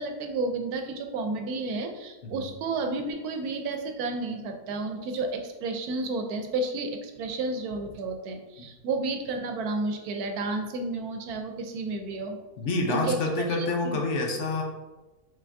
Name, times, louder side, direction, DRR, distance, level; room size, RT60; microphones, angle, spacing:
voice 1, 0.0-12.4 12.9-14.0, right 3 dB, 80° right, 5 dB, 1.1 m, -31 dB
voice 2, 12.6-14.6, left 2 dB, 60° left, 1 dB, 0.9 m, -27 dB
5.7 x 3.6 x 2.6 m, 1.1 s
omnidirectional pair, 1.6 m